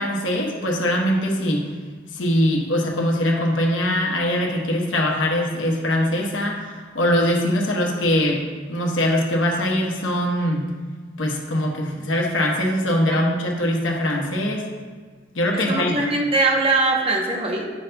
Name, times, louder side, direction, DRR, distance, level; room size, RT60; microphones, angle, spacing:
voice 1, 0.0-1.7 2.1-10.7 11.2-14.6 15.3-16.0, left 1 dB, 85° left, 0 dB, 1.0 m, -22 dB
voice 2, 15.5-17.6, right 2 dB, 30° right, 0 dB, 0.8 m, -21 dB
9.0 x 5.3 x 2.2 m, 1.5 s
head